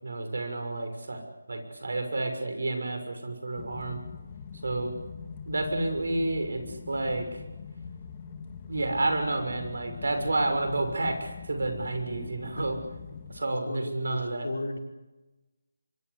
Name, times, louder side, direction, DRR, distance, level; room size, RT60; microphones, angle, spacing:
voice 1, 0.0-1.2 1.5-4.0 4.6-4.9 5.4-7.3 8.7-12.8 13.3-14.5, right 2 dB, 75° right, 6 dB, 6.4 m, -30 dB
sound 1, 3.5-13.4, left 6 dB, 25° left, 2.8 m, -43 dB
voice 2, 13.7-14.8, left 2 dB, 85° left, 2 dB, 5.7 m, -35 dB
24.5 x 23.5 x 8.4 m, 1.1 s
figure-of-eight pair, 165°, 0 cm